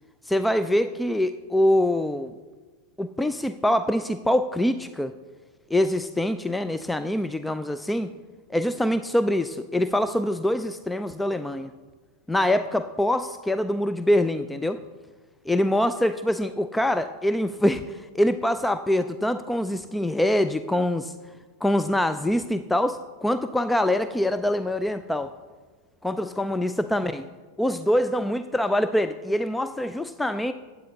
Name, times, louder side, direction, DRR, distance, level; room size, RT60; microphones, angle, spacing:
voice 1, 0.3-2.3 3.0-5.1 5.7-8.1 8.5-11.7 12.3-14.8 15.5-21.1 21.6-25.3 26.0-27.2 27.6-30.5, left 1 dB, 5° left, 11 dB, 0.3 m, -24 dB
15.0 x 9.0 x 2.8 m, 1.4 s
figure-of-eight pair, 90°, 0 cm